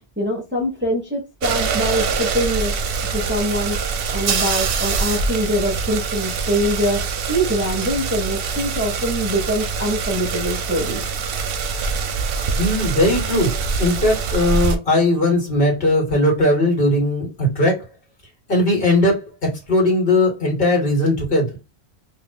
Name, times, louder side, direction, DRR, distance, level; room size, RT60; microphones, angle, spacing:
voice 1, 0.2-2.8 3.1-3.8 4.1-11.0, equal, 10° right, 0.7 m, -23 dB
sound 1, 1.4-14.8, right 5 dB, 65° right, 0.7 m, -24 dB
voice 2, 12.6-13.5 13.8-17.8 18.5-19.2 19.7-21.5, left 1 dB, 55° left, 1.6 m, -18 dB
2.7 x 2.4 x 3.6 m
omnidirectional pair, 1.1 m